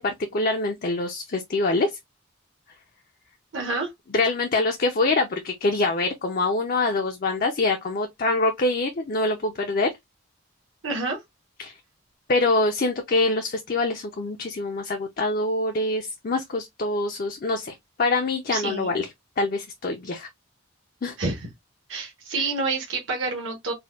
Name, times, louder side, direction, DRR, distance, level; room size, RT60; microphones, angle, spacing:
voice 1, 0.0-1.9 4.1-9.9 11.6-11.7 12.3-19.1 19.4-20.3 21.0-21.2, left 2 dB, 40° left, 0.4 m, -25 dB
voice 2, 3.5-3.9 10.8-11.2 18.5-18.9 21.2-21.5 21.9-23.7, right 3 dB, 60° right, 0.9 m, -28 dB
4.1 x 2.2 x 2.3 m
head